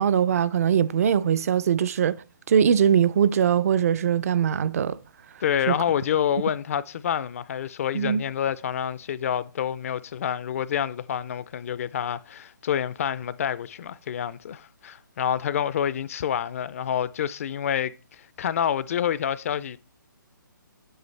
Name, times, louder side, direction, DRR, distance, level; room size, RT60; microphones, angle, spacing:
voice 1, 0.0-2.2 2.5-5.0 5.7-5.8 7.9-8.2, right 8 dB, 45° right, 0.4 m, -21 dB
voice 2, 5.4-19.8, left 9 dB, 40° left, 0.4 m, -28 dB
9.1 x 7.9 x 3.2 m
hypercardioid pair, 150°, 11 cm